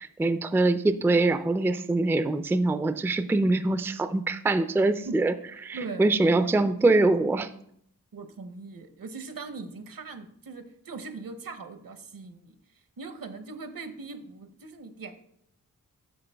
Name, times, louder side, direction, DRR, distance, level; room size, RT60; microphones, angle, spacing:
voice 1, 0.2-5.3 5.6-7.5, right 2 dB, 5° right, 12 dB, 0.3 m, -23 dB
voice 2, 5.7-6.1 6.4-6.5 8.1-12.5 13.0-15.1, right 4 dB, 70° right, 10 dB, 0.9 m, -40 dB
8.0 x 5.7 x 3.4 m, 0.70 s
cardioid pair, 55°, 35 cm